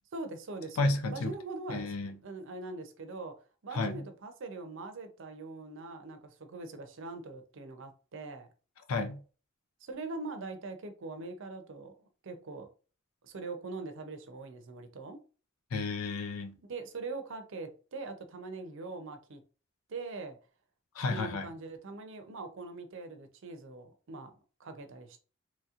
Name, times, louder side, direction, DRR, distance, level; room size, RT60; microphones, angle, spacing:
voice 1, 0.1-3.3 3.6-8.5 9.8-11.9 12.2-12.7 13.2-15.2 16.7-19.4 19.9-20.4 21.1-24.3 24.6-25.2, right 3 dB, 60° right, 0.5 m, -42 dB
voice 2, 0.8-1.4 1.7-2.2 3.7-4.0 8.9-9.2 15.7-16.6 21.0-21.5, left 3 dB, 90° left, 0.5 m, -32 dB
3.0 x 2.8 x 2.4 m
head